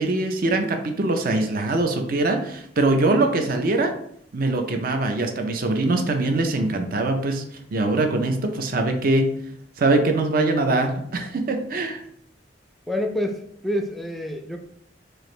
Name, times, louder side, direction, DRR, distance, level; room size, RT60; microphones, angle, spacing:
voice 1, 0.0-4.0 4.3-7.4 7.7-9.3 9.8-12.0, right 2 dB, 50° right, 5 dB, 0.6 m, -22 dB
voice 2, 12.9-14.6, left 1 dB, ahead, 3 dB, 0.4 m, -27 dB
4.6 x 2.5 x 3.1 m, 0.66 s
head